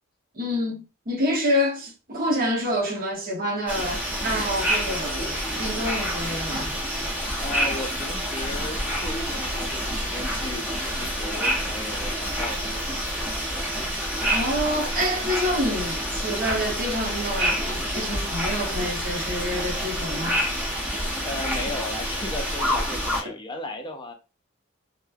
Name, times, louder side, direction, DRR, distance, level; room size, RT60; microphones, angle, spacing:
voice 1, 0.3-6.8 14.3-20.4 21.5-21.6 23.2-23.3, equal, 45° right, 0.9 m, -27 dB
sound 1, 3.7-23.2, equal, 10° right, 0.7 m, -28 dB
voice 2, 7.4-12.9 20.7-24.1, left 2 dB, 25° left, 0.5 m, -36 dB
3.0 x 2.1 x 2.3 m
head